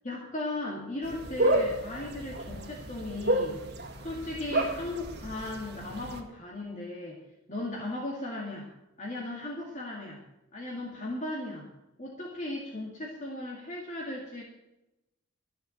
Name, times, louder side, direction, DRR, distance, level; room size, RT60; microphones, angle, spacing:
voice 1, 0.0-3.6 4.0-7.2 7.5-8.7 9.0-10.2 10.5-11.7 12.0-14.4, left 2 dB, 35° left, -2 dB, 2.2 m, -36 dB
sound 1, 1.0-6.2, right 1 dB, 50° right, 1.9 m, -31 dB
13.5 x 6.9 x 9.1 m, 0.93 s
head